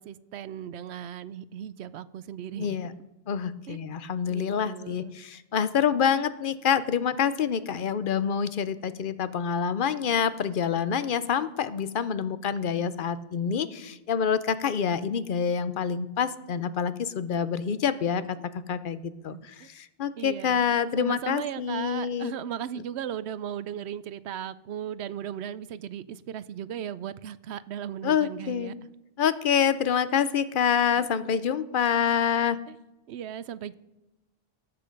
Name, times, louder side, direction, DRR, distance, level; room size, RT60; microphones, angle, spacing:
voice 1, 0.0-2.8 3.7-3.8 4.3-5.2 19.2-19.7 20.2-20.6 21.0-28.7 31.0-31.1 32.7-32.8 33.1-33.7, right 9 dB, 80° right, 17 dB, 0.8 m, -37 dB
voice 2, 2.6-2.9 3.3-22.3 28.0-28.7 29.2-32.6, left 7 dB, 55° left, 15 dB, 0.8 m, -27 dB
17.0 x 7.6 x 5.2 m, 1.0 s
omnidirectional pair, 1.1 m